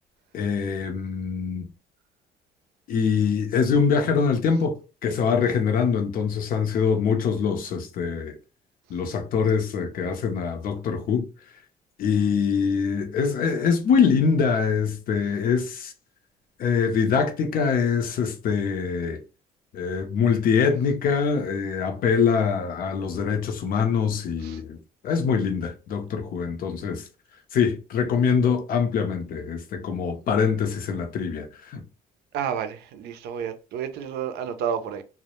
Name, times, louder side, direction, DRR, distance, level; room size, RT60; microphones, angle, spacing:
voice 1, 0.3-1.7 2.9-8.3 8.9-11.3 12.0-15.9 16.6-19.2 19.7-24.8 25.0-27.0 27.5-31.8, left 6 dB, 55° left, 0.6 m, -24 dB
voice 2, 32.3-35.0, right 8 dB, 75° right, 0.4 m, -30 dB
2.1 x 2.1 x 2.8 m
cardioid pair, 110°, 17 cm